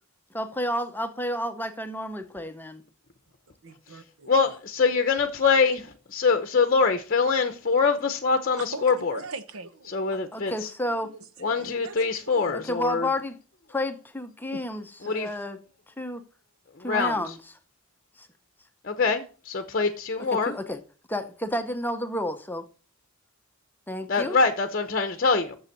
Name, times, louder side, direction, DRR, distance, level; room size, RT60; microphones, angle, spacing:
voice 1, 0.3-2.8 10.3-11.1 12.5-13.4 13.7-15.6 16.0-16.2 16.8-17.4 18.2-18.3 20.3-20.8 21.1-22.7 23.9-24.4, left 1 dB, 10° left, 0.7 m, -31 dB
voice 2, 3.6-4.5 8.5-10.0 10.8-11.0 11.4-12.0 12.3-12.7 14.5-14.6, right 3 dB, 80° right, 1.0 m, -40 dB
voice 3, 4.3-9.2 9.9-10.7 11.4-13.1 15.0-15.3 16.8-17.2 18.8-20.5 24.1-25.6, left 4 dB, 40° left, 0.8 m, -24 dB
7.2 x 7.1 x 6.6 m
head